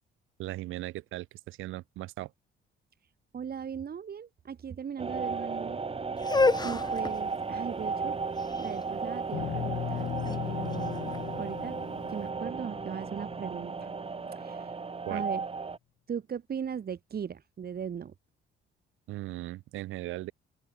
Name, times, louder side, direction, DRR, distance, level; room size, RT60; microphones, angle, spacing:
voice 1, 0.4-2.3 15.1-15.2 19.1-20.3, right 17 dB, 90° right, 1.1 m, -38 dB
voice 2, 3.3-5.8 6.6-8.2 8.6-11.7 12.1-13.9 14.3-14.8 15.1-15.4 16.1-18.1, right 7 dB, 50° right, 4.3 m, -38 dB
sound 1, 5.0-15.8, right 4 dB, 30° right, 2.1 m, -35 dB
sound 2, 6.2-12.1, left 3 dB, 20° left, 2.0 m, -32 dB
sound 3, 9.3-13.7, left 12 dB, 70° left, 2.5 m, -37 dB
open air
cardioid pair, 90°, 20 cm